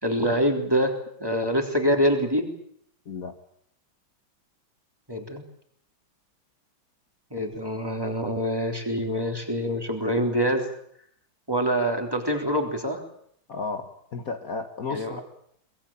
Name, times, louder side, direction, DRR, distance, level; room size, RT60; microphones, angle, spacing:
voice 1, 0.0-2.5 5.1-5.4 7.3-10.7 11.5-13.0 14.9-15.2, equal, 10° right, 3 dB, 3.6 m, -25 dB
voice 2, 3.1-3.4 13.5-15.2, left 4 dB, 45° left, 6 dB, 1.8 m, -33 dB
23.0 x 21.0 x 8.8 m, 0.68 s
omnidirectional pair, 2.2 m